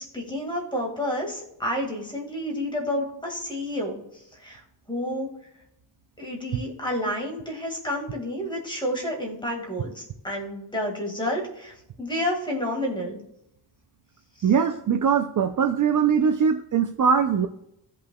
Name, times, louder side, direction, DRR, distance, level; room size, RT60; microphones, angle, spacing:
voice 1, 0.0-4.0 4.4-4.6 4.9-5.3 6.2-13.2 14.4-14.5, left 1 dB, 10° left, -1 dB, 1.9 m, -30 dB
voice 2, 14.4-17.5, right 6 dB, 45° right, 7 dB, 0.5 m, -21 dB
16.5 x 5.6 x 2.3 m, 0.80 s
wide cardioid pair, 175°, 43 cm